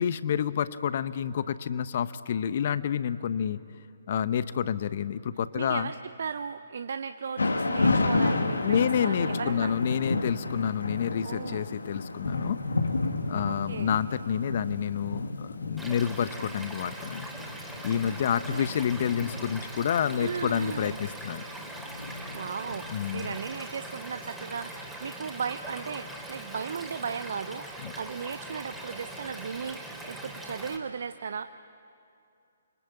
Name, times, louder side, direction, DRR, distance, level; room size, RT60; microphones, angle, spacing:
voice 1, 0.0-3.6 4.1-5.9 8.6-12.6 13.3-17.3 17.8-21.4 22.9-23.3 27.8-27.9, left 8 dB, 50° left, 14 dB, 1.0 m, -29 dB
voice 2, 5.5-9.7 11.2-11.8 13.5-14.0 17.9-18.7 20.2-21.0 22.3-29.8 30.1-31.5, right 6 dB, 60° right, 10 dB, 0.7 m, -36 dB
Thunder / Rain, 7.4-23.4, left 3 dB, 75° left, 2.3 m, -31 dB
Stream / Liquid, 15.8-30.8, right 1 dB, ahead, 3.1 m, -41 dB
28.5 x 24.0 x 8.6 m, 2.6 s
figure-of-eight pair, 135°, 0 cm